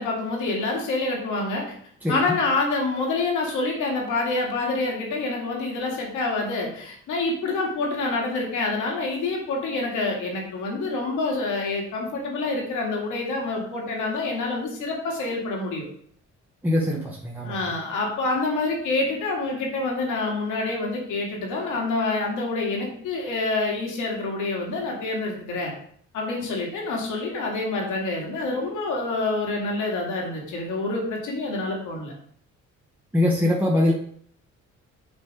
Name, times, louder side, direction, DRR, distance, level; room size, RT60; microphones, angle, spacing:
voice 1, 0.0-1.7 2.1-15.9 17.4-25.7 26.1-32.1, left 3 dB, 85° left, -1 dB, 2.1 m, -27 dB
voice 2, 16.6-17.6 33.1-33.9, left 1 dB, 5° right, -3 dB, 1.0 m, -22 dB
7.1 x 3.5 x 4.9 m, 0.63 s
cardioid pair, 90°, 30 cm